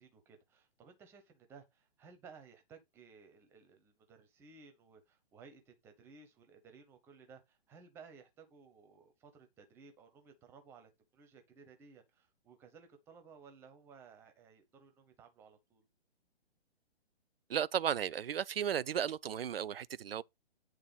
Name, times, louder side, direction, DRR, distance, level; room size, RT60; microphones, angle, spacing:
voice 1, 0.0-15.9, right 5 dB, 10° right, 0.6 m, -58 dB
voice 2, 17.5-20.2, right 9 dB, 65° right, 0.4 m, -34 dB
8.7 x 3.4 x 5.1 m
figure-of-eight pair, 130°, 32 cm